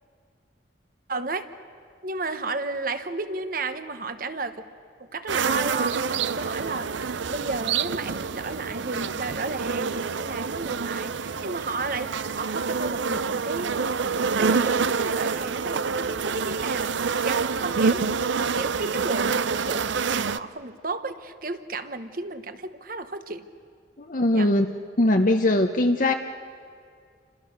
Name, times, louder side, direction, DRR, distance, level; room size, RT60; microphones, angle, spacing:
voice 1, 1.1-1.5 2.0-4.7 5.0-13.9 14.3-23.5 24.3-24.5, right 3 dB, 50° right, 10 dB, 1.1 m, -33 dB
sound 1, 5.3-20.4, right 5 dB, 80° right, 0.6 m, -27 dB
voice 2, 24.0-24.7 25.0-26.1, left 1 dB, 45° left, 4 dB, 0.8 m, -20 dB
30.0 x 26.5 x 6.6 m, 2.2 s
head